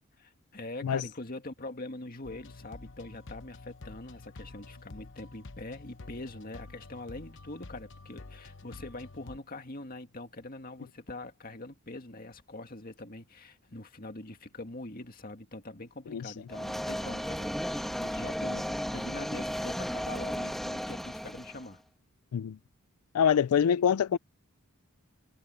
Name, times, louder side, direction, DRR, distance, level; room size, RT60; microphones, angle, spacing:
voice 1, 0.2-21.8, left 2 dB, 40° left, 2.1 m, -43 dB
sound 1, 2.2-9.4, left 2 dB, 60° left, 1.0 m, -48 dB
sound 2, 16.5-21.7, equal, ahead, 1.5 m, -34 dB
voice 2, 23.1-24.2, left 8 dB, 85° left, 0.4 m, -25 dB
head